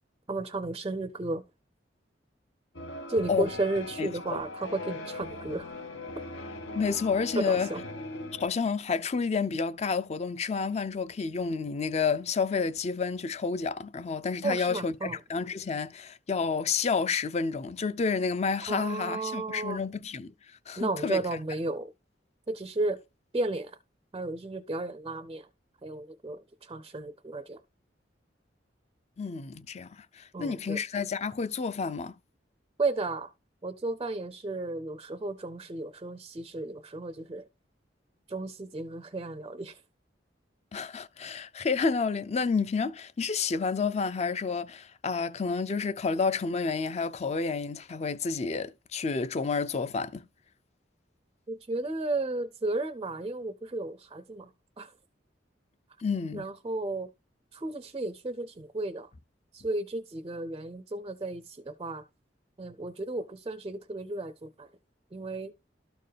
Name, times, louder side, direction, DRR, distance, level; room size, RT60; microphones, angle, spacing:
voice 1, 0.3-1.4 3.1-5.7 7.4-7.8 14.4-15.2 18.7-19.8 20.8-21.9 22.5-23.0 23.3-23.7 24.1-25.5 25.8-26.4 26.7-27.6 30.3-30.8 32.8-33.3 33.6-37.4 38.3-39.7 51.5-54.5 54.8-54.9 56.3-57.1 57.5-59.1 59.5-62.0 62.6-64.7 65.1-65.5, right 2 dB, 25° right, 0.4 m, -33 dB
sound 1, 2.7-8.5, left 2 dB, 80° left, 1.0 m, -40 dB
voice 2, 4.0-4.4 6.7-7.7 8.3-20.3 20.7-21.4 29.2-32.1 40.7-50.2 56.0-56.5, left 5 dB, 35° left, 0.5 m, -30 dB
12.5 x 4.4 x 3.3 m
head